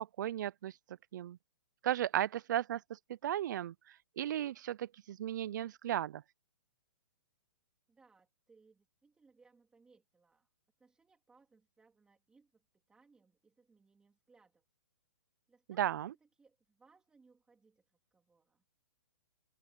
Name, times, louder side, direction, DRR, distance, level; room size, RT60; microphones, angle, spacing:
voice 1, 0.0-1.4 1.8-3.7 4.2-6.2 15.8-16.1, right 11 dB, 50° right, 0.4 m, -35 dB
voice 2, 7.9-10.5 10.8-14.6 15.5-18.6, right 4 dB, 5° right, 3.3 m, -68 dB
open air
hypercardioid pair, 165°, 12 cm